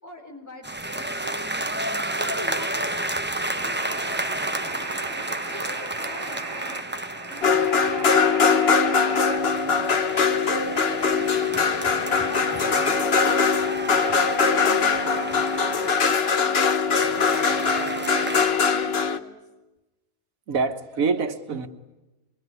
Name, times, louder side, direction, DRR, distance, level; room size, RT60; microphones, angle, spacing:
voice 1, 0.0-1.5 2.2-3.1 3.3-5.0 5.3-6.9 9.5-13.7 14.1-16.6 17.0-19.4, left 1 dB, 10° left, 4.0 m, -43 dB
sound 1, 0.6-8.2 8.8-16.4 16.9-18.4, right 1 dB, 10° right, 0.7 m, -32 dB
sound 2, 3.6-9.4, right 3 dB, 55° right, 2.0 m, -36 dB
sound 3, 7.4-19.2, left 5 dB, 50° left, 1.4 m, -22 dB
voice 2, 20.5-21.7, right 4 dB, 90° right, 1.8 m, -25 dB
26.5 x 23.0 x 9.6 m
omnidirectional pair, 1.4 m